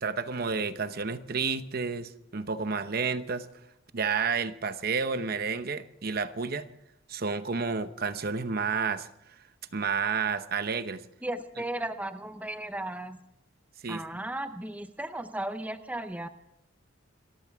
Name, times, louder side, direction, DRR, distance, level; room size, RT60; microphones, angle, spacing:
voice 1, 0.0-3.5 3.9-6.7 7.1-9.1 9.7-11.0 13.8-14.2, right 5 dB, 50° right, 11 dB, 0.9 m, -30 dB
voice 2, 11.2-13.2 13.9-16.3, right 1 dB, 10° right, 9 dB, 0.6 m, -35 dB
27.0 x 14.5 x 3.6 m, 0.75 s
head